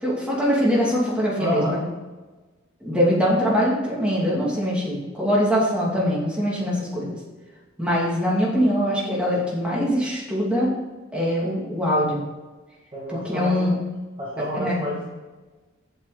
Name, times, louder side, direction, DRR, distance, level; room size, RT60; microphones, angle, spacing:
voice 1, 0.0-1.8 2.8-7.2 7.8-10.7 11.1-12.2 13.1-13.7 14.5-14.8, equal, 5° right, -5 dB, 2.6 m, -22 dB
voice 2, 1.4-1.8 12.9-13.8 14.2-15.0, equal, 25° right, -6 dB, 1.8 m, -29 dB
7.9 x 6.8 x 5.1 m, 1.2 s
head